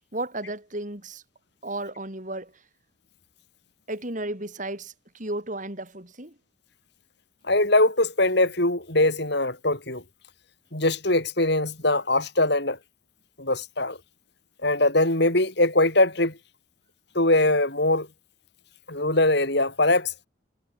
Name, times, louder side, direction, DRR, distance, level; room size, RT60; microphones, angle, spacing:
voice 1, 0.1-1.2 1.6-2.5 3.9-6.3, right 1 dB, 40° right, 3.7 m, -33 dB
voice 2, 7.5-10.0 10.7-12.8 13.4-14.0 14.6-16.4 17.1-18.1 18.9-20.1, left 2 dB, 55° left, 4.8 m, -22 dB
head